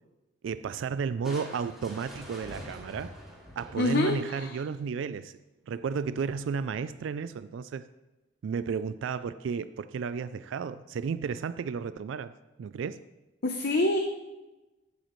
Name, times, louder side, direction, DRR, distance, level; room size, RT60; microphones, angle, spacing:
voice 1, 0.4-3.1 3.6-5.4 5.7-7.9 8.4-12.3 12.6-13.0, right 6 dB, 75° right, 13 dB, 0.3 m, -33 dB
Crushing, 1.2-4.6, equal, ahead, 2.4 m, -45 dB
voice 2, 3.8-4.6 13.4-14.0, left 2 dB, 55° left, 4 dB, 0.7 m, -26 dB
13.0 x 8.3 x 3.1 m, 1.1 s
head